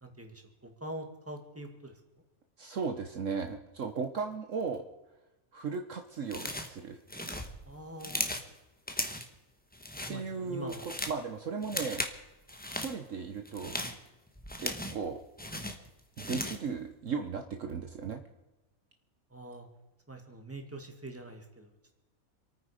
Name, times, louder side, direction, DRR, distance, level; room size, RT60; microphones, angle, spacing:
voice 1, 0.0-1.9 7.7-8.3 10.1-10.9 19.3-19.7 20.1-21.7, right 1 dB, 10° right, 4 dB, 2.1 m, -44 dB
voice 2, 2.6-4.8 5.5-7.0 10.1-12.0 12.6-13.8 14.6-15.2 16.2-18.2, right 5 dB, 60° right, 5 dB, 1.3 m, -36 dB
sound 1, 6.3-6.8 7.1-8.5 8.9-9.3 9.7-10.2 10.5-11.2 11.6-12.2 12.5-12.9 13.4-15.1 15.4-16.7, left 1 dB, 5° left, 1.1 m, -37 dB
27.5 x 9.4 x 5.0 m, 1.0 s
omnidirectional pair, 1.6 m